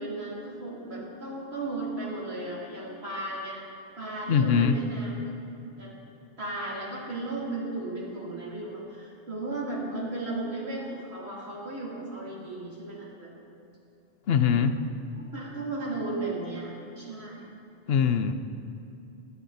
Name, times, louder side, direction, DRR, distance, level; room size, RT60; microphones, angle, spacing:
voice 1, 0.0-3.6 4.0-5.1 5.8-5.9 6.4-13.3 15.2-17.4, right 2 dB, 75° right, -5 dB, 3.0 m, -35 dB
voice 2, 4.3-4.8 14.3-14.8 17.9-18.3, left 7 dB, 70° left, 10 dB, 0.8 m, -22 dB
21.0 x 8.4 x 4.0 m, 2.7 s
omnidirectional pair, 1.1 m